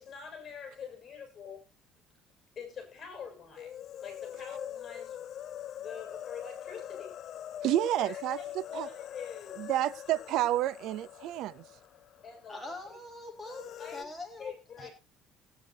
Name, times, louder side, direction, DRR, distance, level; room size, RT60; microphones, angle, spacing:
voice 1, 0.0-1.6 2.6-3.8 4.0-5.2 5.8-7.2 7.7-9.7 12.2-12.8 13.6-14.1 14.4-14.9, left 6 dB, 35° left, 6.8 m, -45 dB
sound 1, 3.6-12.4 12.7-12.8 13.4-14.0, left 11 dB, 55° left, 0.5 m, -43 dB
voice 2, 7.6-8.4 8.7-8.9 9.6-11.6, right 14 dB, 70° right, 0.6 m, -29 dB
voice 3, 12.5-14.5 14.8-14.9, left 2 dB, 5° left, 2.1 m, -43 dB
19.0 x 9.3 x 2.8 m
cardioid pair, 120°, 0 cm